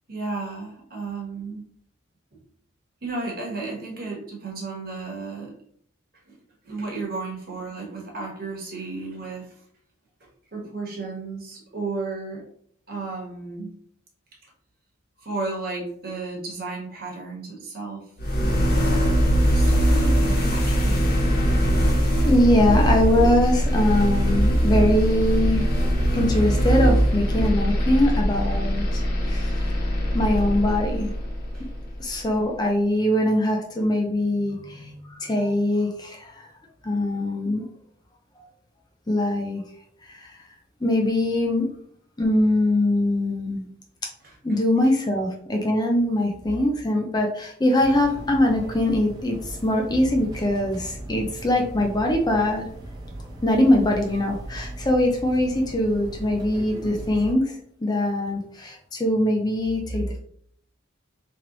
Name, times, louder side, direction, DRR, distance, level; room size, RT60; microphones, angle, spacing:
voice 1, 0.1-1.6 3.0-5.5 6.3-6.4 6.6-9.5 10.2-12.4 12.9-13.7 15.2-18.1 18.4-18.6 19.5-21.3 31.5-31.7 44.2-44.4, right 3 dB, 50° right, -1 dB, 1.3 m, -33 dB
sound 1, 18.2-32.1, equal, 50° left, 1.1 m, -21 dB
voice 2, 22.2-25.7 26.1-29.0 29.3-29.8 30.1-31.1 32.0-36.5 36.8-37.7 39.1-39.6 40.0-40.4 40.8-41.7 42.2-43.7 44.4-52.6 53.4-60.2, left 1 dB, 20° left, 2 dB, 0.5 m, -22 dB
sound 2, 47.8-57.3, right 1 dB, 20° right, 0.7 m, -38 dB
3.1 x 3.0 x 3.9 m, 0.62 s
head